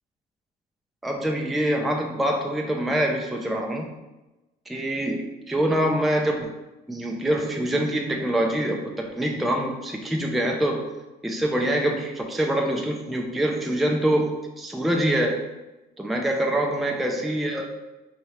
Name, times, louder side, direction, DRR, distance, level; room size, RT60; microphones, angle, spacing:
voice 1, 1.0-3.9 4.7-6.5 6.9-10.8 11.2-15.4 16.0-17.7, right 1 dB, ahead, 1 dB, 0.4 m, -25 dB
3.1 x 2.3 x 4.2 m, 1.0 s
cardioid pair, 110°, 17 cm